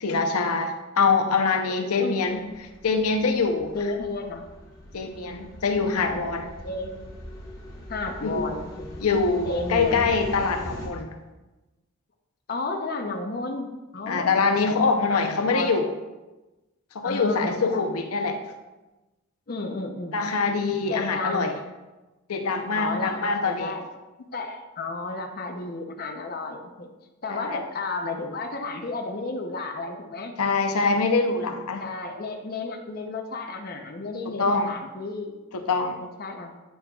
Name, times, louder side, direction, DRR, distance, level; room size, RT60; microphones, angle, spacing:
voice 1, 0.0-2.5 2.8-3.7 4.9-6.5 8.2-8.4 9.0-11.2 14.1-15.9 16.9-18.4 20.1-21.5 22.3-23.8 27.3-27.6 30.4-31.9 34.2-34.8 35.5-36.0, left 4 dB, 90° left, 5 dB, 0.7 m, -24 dB
sound 1, 2.2-10.9, equal, 15° left, 1.2 m, -41 dB
voice 2, 3.7-4.5 6.0-6.3 6.6-7.1 7.9-8.9 9.5-10.0 12.5-14.5 15.1-15.7 17.0-17.8 19.5-20.2 20.9-21.5 22.7-23.9 24.3-26.9 27.2-30.3 31.8-35.4 36.0-36.6, left 3 dB, 45° left, 3 dB, 0.7 m, -32 dB
9.3 x 6.2 x 2.3 m, 1.1 s
head